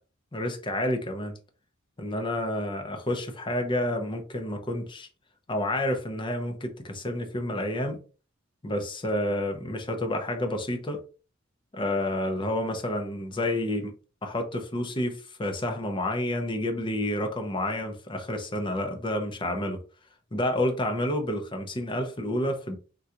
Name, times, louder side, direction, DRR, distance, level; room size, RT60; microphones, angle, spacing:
voice 1, 0.3-1.4 2.0-5.1 5.5-8.0 8.6-11.0 11.7-13.9 14.2-19.8 20.3-22.8, left 1 dB, 25° left, 0.5 m, -29 dB
3.7 x 2.3 x 2.8 m
head